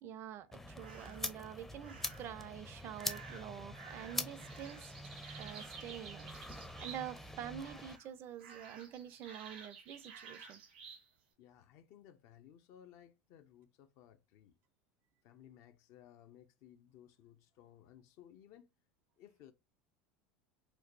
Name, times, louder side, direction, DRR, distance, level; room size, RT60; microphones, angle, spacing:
voice 1, 0.0-4.9 5.4-6.3 6.6-10.6, right 10 dB, 50° right, 0.5 m, -47 dB
sound 1, 0.5-8.0, left 1 dB, 5° left, 0.5 m, -45 dB
sound 2, 0.8-1.3 1.8-2.4 2.9-7.3 7.5-8.1 8.4-11.0, right 5 dB, 90° right, 1.2 m, -53 dB
voice 2, 11.4-14.6 15.2-18.7 19.2-19.5, left 10 dB, 60° left, 0.6 m, -59 dB
4.5 x 2.2 x 2.5 m
hypercardioid pair, 95°, 5 cm